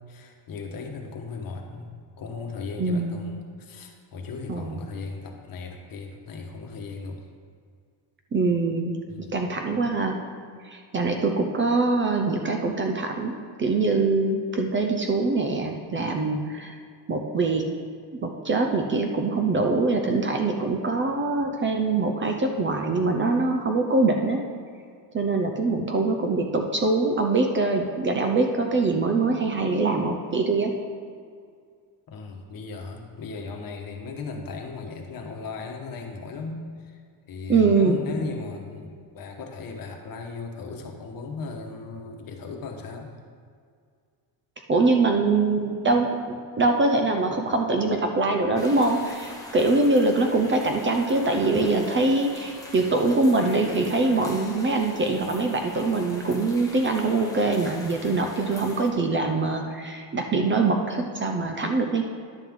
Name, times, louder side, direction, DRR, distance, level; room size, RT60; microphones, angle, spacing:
voice 1, 0.1-1.9 2.2-7.2 9.1-9.3 32.1-37.0 37.3-43.1, left 4 dB, 50° left, 2 dB, 1.2 m, -37 dB
voice 2, 2.8-3.3 4.5-4.8 8.3-10.2 10.6-16.8 17.1-17.7 18.2-24.4 25.1-30.7 37.5-38.0 44.7-62.0, right 3 dB, 25° right, 3 dB, 0.6 m, -23 dB
sound 1, 48.6-58.9, left 2 dB, 10° left, 1.0 m, -44 dB
11.0 x 7.5 x 3.6 m, 2.1 s
cardioid pair, 155°, 44 cm